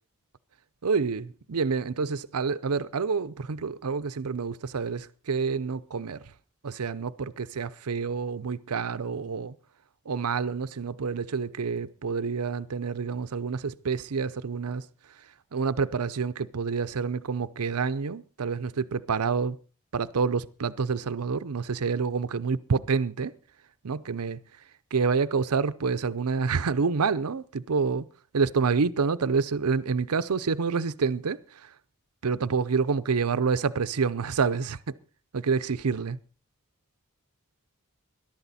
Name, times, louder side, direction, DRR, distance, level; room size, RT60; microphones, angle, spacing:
voice 1, 0.8-6.2 6.6-9.5 10.1-14.9 15.5-19.6 19.9-23.3 23.8-24.4 24.9-28.1 28.3-31.7 32.2-34.9 35.3-36.2, right 5 dB, 85° right, 0.6 m, -28 dB
21.5 x 12.0 x 4.2 m
head